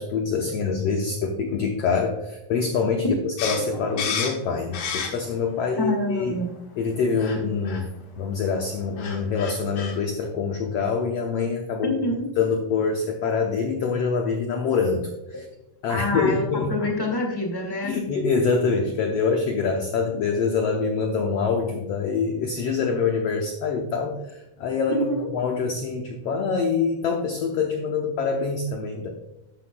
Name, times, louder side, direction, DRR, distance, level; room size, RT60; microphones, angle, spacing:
voice 1, 0.0-6.4 6.8-7.9 8.2-11.9 12.4-15.4 15.8-16.7 17.8-24.2 24.6-25.1 25.3-29.1, left 5 dB, 85° left, 2 dB, 1.4 m, -25 dB
sound 1, 3.4-5.4 5.8-6.6 7.2-7.4 7.7-7.8 8.7-8.8 9.0-9.9, left 6 dB, 60° left, 2.8 m, -31 dB
voice 2, 5.8-6.5 11.8-12.3 15.9-17.9 24.9-25.3, left 2 dB, 15° left, 1 dB, 0.9 m, -26 dB
12.0 x 9.4 x 2.2 m, 0.91 s
omnidirectional pair, 4.0 m